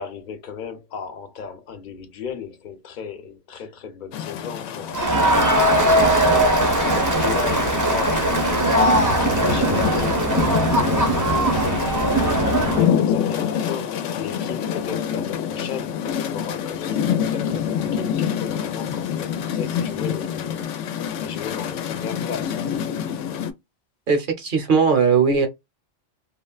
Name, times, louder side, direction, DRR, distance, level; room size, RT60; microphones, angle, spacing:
voice 1, 0.0-5.1 5.5-11.9 12.2-22.6, left 6 dB, 50° left, 0.8 m, -35 dB
sound 1, 4.1-23.5, left 8 dB, 90° left, 0.9 m, -27 dB
Crowd, 4.9-12.9, right 1 dB, 20° right, 0.6 m, -20 dB
voice 2, 24.1-25.5, right 5 dB, 50° right, 0.9 m, -18 dB
3.7 x 2.1 x 2.3 m
omnidirectional pair, 1.2 m